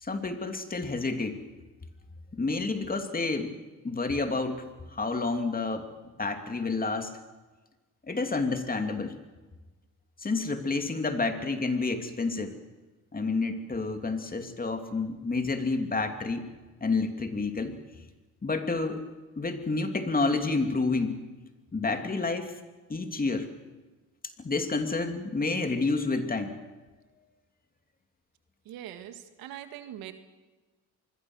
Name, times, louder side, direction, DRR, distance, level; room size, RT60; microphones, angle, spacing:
voice 1, 0.0-1.4 2.3-3.5 3.8-5.9 6.2-7.1 8.1-9.2 10.2-12.5 13.1-16.5 16.8-17.8 18.4-19.0 19.4-21.2 21.7-22.6 22.9-23.5 24.4-26.6, left 3 dB, 25° left, 6 dB, 2.8 m, -29 dB
voice 2, 28.7-30.1, right 11 dB, 90° right, 8 dB, 2.0 m, -42 dB
25.5 x 22.0 x 6.3 m, 1.3 s
cardioid pair, 90°, 35 cm